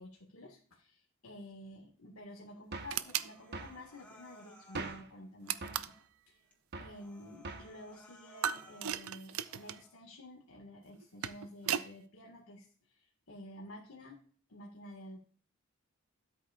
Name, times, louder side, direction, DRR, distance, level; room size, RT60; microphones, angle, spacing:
voice 1, 0.0-5.9 6.3-6.4 6.8-14.2 14.5-15.2, left 1 dB, 80° left, -1 dB, 1.9 m, -51 dB
sound 1, 2.7-3.0 3.5-3.8 4.8-5.1 5.6-5.9 6.7-7.0 7.4-7.8, right 3 dB, 50° right, 1.0 m, -42 dB
sound 2, 2.9-3.3 5.5-6.0 8.4-9.8 10.9-11.9, right 9 dB, 75° right, 0.5 m, -36 dB
Human voice, 3.0-5.0 5.4-6.1 6.5-6.6 6.9-9.0 9.4-10.0, equal, 5° left, 1.9 m, -60 dB
13.0 x 8.2 x 2.5 m, 0.42 s
head